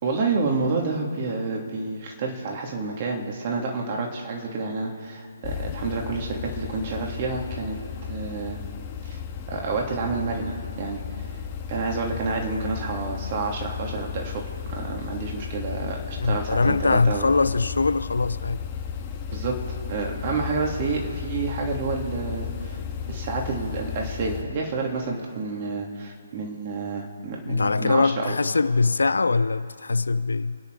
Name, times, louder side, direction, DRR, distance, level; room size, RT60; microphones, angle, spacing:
voice 1, 0.0-7.8 8.1-8.6 9.0-9.2 9.5-11.0 11.7-14.4 14.7-17.3 19.3-19.6 19.9-22.8 23.1-28.3, right 4 dB, 35° right, 3.1 m, -29 dB
sound 1, 5.4-24.4, left 7 dB, 25° left, 1.6 m, -34 dB
voice 2, 16.2-18.6 27.4-30.6, left 3 dB, 65° left, 0.6 m, -22 dB
28.0 x 10.0 x 5.0 m
figure-of-eight pair, 140°, 0 cm